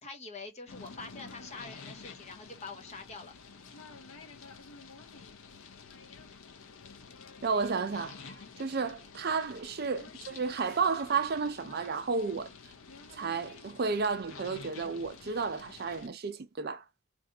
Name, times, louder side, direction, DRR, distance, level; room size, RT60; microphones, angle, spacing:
voice 1, 0.0-3.3, left 3 dB, 30° left, 0.7 m, -45 dB
sound 1, 0.7-16.1, left 5 dB, 70° left, 0.6 m, -50 dB
voice 2, 7.4-12.5 13.1-16.8, right 5 dB, 45° right, 0.5 m, -32 dB
3.3 x 2.5 x 2.7 m
head